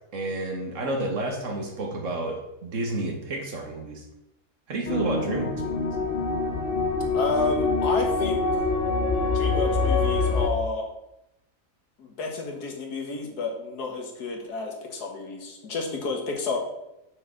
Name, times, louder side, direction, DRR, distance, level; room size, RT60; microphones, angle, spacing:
voice 1, 0.1-4.0 4.7-5.9, right 2 dB, 55° right, 2 dB, 1.5 m, -30 dB
sound 1, 4.9-10.5, left 3 dB, 45° left, 0.8 m, -25 dB
voice 2, 7.1-8.7 9.2-10.9 12.0-16.6, left 3 dB, 75° left, 2 dB, 2.0 m, -31 dB
6.5 x 4.9 x 6.1 m, 0.89 s
omnidirectional pair, 1.7 m